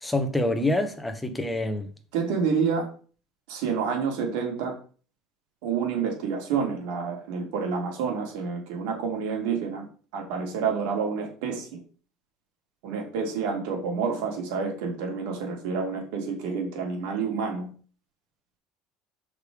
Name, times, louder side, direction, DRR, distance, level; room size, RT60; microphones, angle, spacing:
voice 1, 0.0-1.9, left 1 dB, 5° left, 1.1 m, -26 dB
voice 2, 2.1-2.9 3.5-4.8 5.6-9.8 10.1-11.7 12.8-17.7, right 5 dB, 80° right, 2.9 m, -28 dB
6.6 x 5.1 x 5.0 m
cardioid pair, 140°, 0 cm